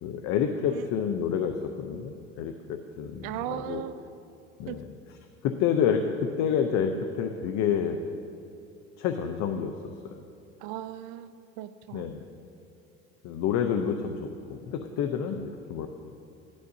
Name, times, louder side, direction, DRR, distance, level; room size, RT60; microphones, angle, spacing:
voice 1, 0.0-3.8 4.6-4.9 5.4-8.0 9.0-9.7 10.0-10.1 11.9-12.2 13.2-15.9, left 7 dB, 65° left, 6 dB, 0.7 m, -28 dB
voice 2, 3.2-4.0 4.7-4.8 10.6-12.1, right 12 dB, 75° right, 11 dB, 0.5 m, -37 dB
15.5 x 11.5 x 2.7 m, 2.6 s
supercardioid pair, 100°, 30 cm